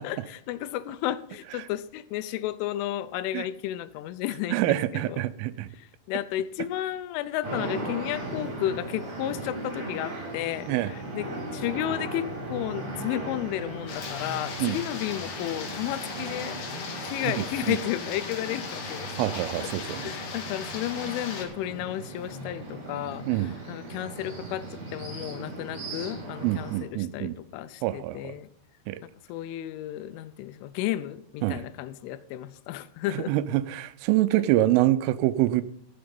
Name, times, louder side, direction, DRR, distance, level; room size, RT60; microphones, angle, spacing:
voice 1, 0.0-5.3 5.7-11.3 11.5-16.6 17.0-28.5 29.0-33.3 34.3-34.4, left 13 dB, 85° left, 14 dB, 3.0 m, -33 dB
voice 2, 4.5-5.7 10.7-10.9 14.6-14.8 17.4-17.8 19.2-20.1 23.3-23.5 26.4-27.4 27.8-28.3 28.9-29.0 31.4-31.6 33.1-35.6, right 15 dB, 90° right, 14 dB, 3.2 m, -26 dB
sound 1, 7.4-26.8, right 2 dB, 35° right, 4.9 m, -38 dB
sound 2, 13.9-21.5, left 5 dB, 55° left, 2.6 m, -38 dB
14.5 x 7.8 x 5.3 m, 0.67 s
omnidirectional pair, 5.6 m